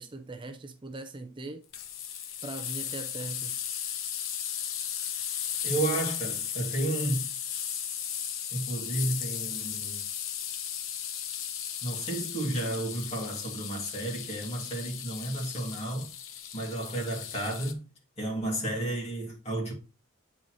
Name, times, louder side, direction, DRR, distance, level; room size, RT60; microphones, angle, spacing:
voice 1, 0.0-1.6 2.4-3.5, right 2 dB, 25° right, 0.5 m, -40 dB
sound 1, 1.7-17.7, left 9 dB, 85° left, 0.8 m, -36 dB
voice 2, 5.6-7.3 8.5-10.0 11.8-16.1 16.5-17.8 18.2-19.7, right 1 dB, 30° left, 2.5 m, -32 dB
8.7 x 4.1 x 3.1 m
head